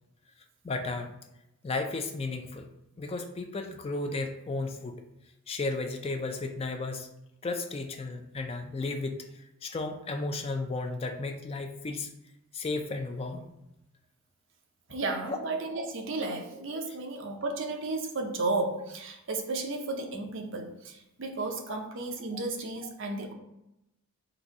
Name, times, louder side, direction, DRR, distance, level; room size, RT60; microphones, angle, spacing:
voice 1, 0.6-1.1 1.6-2.7 3.0-5.0 5.5-7.1 7.4-12.1 12.5-13.5 15.3-15.4 16.9-17.0 21.7-21.8 22.3-22.4, left 3 dB, 25° left, 5 dB, 0.3 m, -34 dB
voice 2, 14.9-23.3, right 2 dB, 55° right, 3 dB, 0.6 m, -33 dB
3.9 x 2.6 x 4.7 m, 0.87 s
head